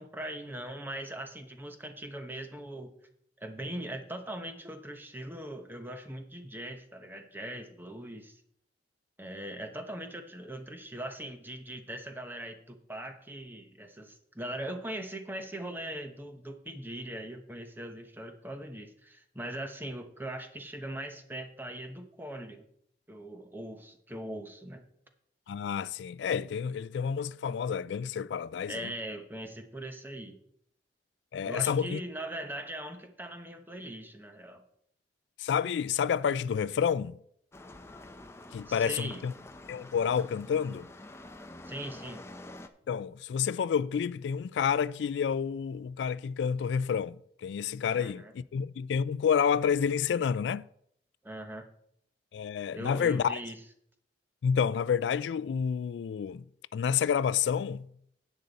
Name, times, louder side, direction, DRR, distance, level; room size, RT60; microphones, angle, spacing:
voice 1, 0.0-2.9 3.4-8.4 9.2-22.6 23.1-24.8 28.7-30.4 31.4-34.6 38.7-39.3 41.6-42.2 47.9-48.3 51.2-51.6 52.7-53.6, right 1 dB, 10° right, 1.0 m, -40 dB
voice 2, 25.5-28.9 31.3-32.0 35.4-37.1 38.5-39.3 39.7-40.9 42.9-50.6 52.3-53.4 54.4-56.4 56.7-57.9, left 7 dB, 85° left, 0.3 m, -29 dB
sound 1, 37.5-42.7, left 2 dB, 15° left, 0.6 m, -48 dB
10.5 x 8.1 x 4.1 m
head